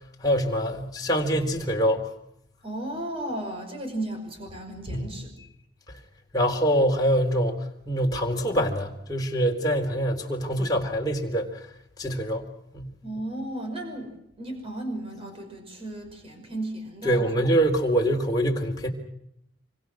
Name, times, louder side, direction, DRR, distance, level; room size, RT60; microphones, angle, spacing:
voice 1, 0.2-2.1 4.9-5.0 6.3-7.6 7.9-11.5 12.0-12.5 12.7-12.9 17.0-18.9, equal, 20° left, 0 dB, 3.9 m, -24 dB
voice 2, 2.6-5.3 13.0-17.3, right 1 dB, 35° right, 4 dB, 5.6 m, -35 dB
26.5 x 26.0 x 6.4 m, 0.77 s
head